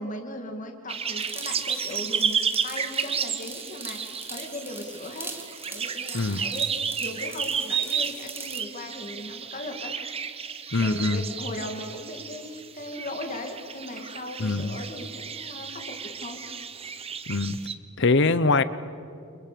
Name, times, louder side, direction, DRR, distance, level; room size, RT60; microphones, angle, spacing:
voice 1, 0.0-5.3 5.7-6.7 7.0-9.9 10.8-16.4, left 1 dB, 40° left, 3 dB, 2.5 m, -38 dB
sound 1, 0.9-17.7, right 6 dB, 30° right, 1.0 m, -32 dB
sound 2, 1.2-8.7, right 3 dB, 10° right, 1.8 m, -42 dB
voice 2, 10.7-11.2 14.4-14.8 17.3-17.6 18.0-18.6, left 3 dB, 60° left, 15 dB, 1.0 m, -23 dB
29.5 x 28.0 x 7.0 m, 2.4 s
head